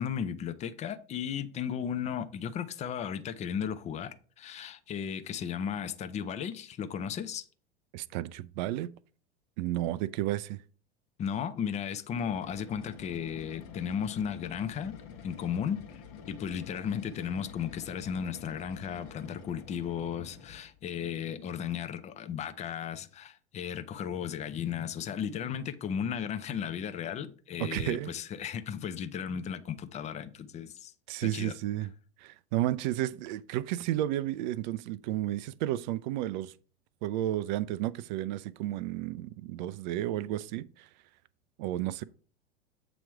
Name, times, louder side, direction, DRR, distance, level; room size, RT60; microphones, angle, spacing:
voice 1, 0.0-7.4 11.2-15.0 15.2-30.9 31.2-31.6, left 8 dB, 20° left, 0.5 m, -35 dB
voice 2, 7.9-8.9 9.6-10.6 27.6-28.2 31.1-31.9 32.2-36.5 37.0-40.9 41.6-42.0, right 14 dB, 45° right, 0.4 m, -32 dB
sound 1, 12.0-20.8, left 6 dB, 45° left, 1.1 m, -48 dB
7.7 x 3.0 x 4.6 m
figure-of-eight pair, 85°, 33 cm